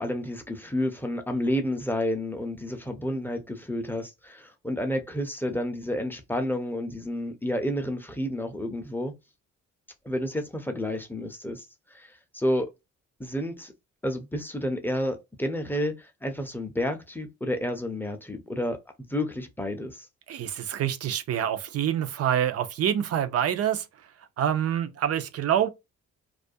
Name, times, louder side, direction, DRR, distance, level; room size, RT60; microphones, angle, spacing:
voice 1, 0.0-9.1 10.0-11.7 11.9-12.7 13.2-13.7 14.0-18.8 19.1-20.1, left 1 dB, 5° left, 0.5 m, -30 dB
voice 2, 20.3-23.9 24.4-25.7, right 10 dB, 55° right, 0.5 m, -26 dB
2.4 x 2.1 x 2.5 m
cardioid pair, 90°, 30 cm